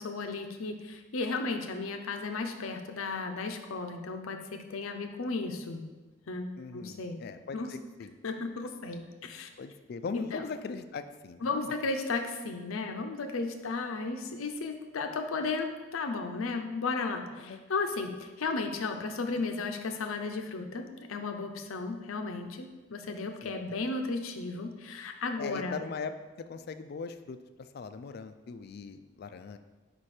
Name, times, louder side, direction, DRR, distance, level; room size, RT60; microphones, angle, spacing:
voice 1, 0.0-5.9 6.3-7.2 7.5-7.7 8.2-9.5 10.1-10.4 11.4-25.8, left 3 dB, 85° left, 6 dB, 0.6 m, -34 dB
voice 2, 6.6-8.2 9.6-11.7 17.4-17.6 23.4-23.7 25.4-29.6, left 4 dB, 50° left, 10 dB, 0.3 m, -40 dB
5.3 x 4.3 x 4.8 m, 1.2 s
head